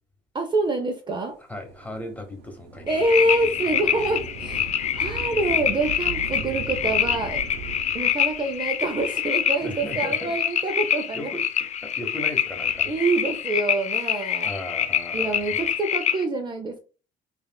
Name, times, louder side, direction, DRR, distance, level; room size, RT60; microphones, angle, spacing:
voice 1, 0.3-1.4 2.9-4.7 5.0-7.4 7.9-11.3 12.9-14.5 15.1-16.8, right 2 dB, 25° right, 5 dB, 0.5 m, -26 dB
voice 2, 1.5-3.0 9.6-10.4 11.1-12.9 14.4-15.6, left 1 dB, 10° left, 3 dB, 1.0 m, -37 dB
Thunder / Rain, 1.5-10.5 11.3-11.4 12.3-13.6 15.1-15.8, right 5 dB, 80° right, 0.8 m, -40 dB
sound 1, 2.9-16.3, left 9 dB, 45° left, 0.4 m, -26 dB
5.6 x 2.4 x 2.3 m, 0.35 s
cardioid pair, 110°, 17 cm